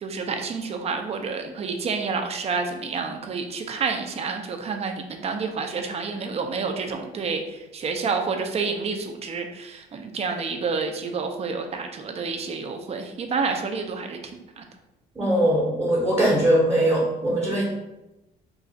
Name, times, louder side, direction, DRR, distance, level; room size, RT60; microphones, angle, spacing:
voice 1, 0.0-7.4 7.7-14.2 14.6-14.7, right 4 dB, 40° right, 5 dB, 0.5 m, -29 dB
voice 2, 15.1-17.6, right 1 dB, 15° right, -6 dB, 0.9 m, -21 dB
3.2 x 2.5 x 3.9 m, 0.96 s
cardioid pair, 110°, 17 cm